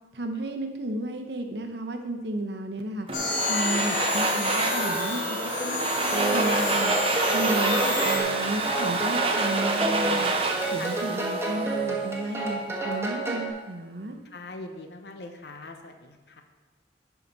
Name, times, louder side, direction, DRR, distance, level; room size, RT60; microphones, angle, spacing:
voice 1, 0.1-3.1 3.5-10.3 10.7-14.2, right 1 dB, 65° right, 5 dB, 0.9 m, -33 dB
sound 1, 3.1-8.2, left 3 dB, 45° left, 1.4 m, -30 dB
Domestic sounds home sounds, 3.1-12.0, right 3 dB, 30° right, 0.7 m, -28 dB
sound 2, 6.1-13.5, right 2 dB, 15° right, 1.2 m, -29 dB
voice 2, 14.3-16.4, left 2 dB, 65° left, 5 dB, 0.9 m, -41 dB
11.5 x 5.0 x 4.0 m, 1.2 s
head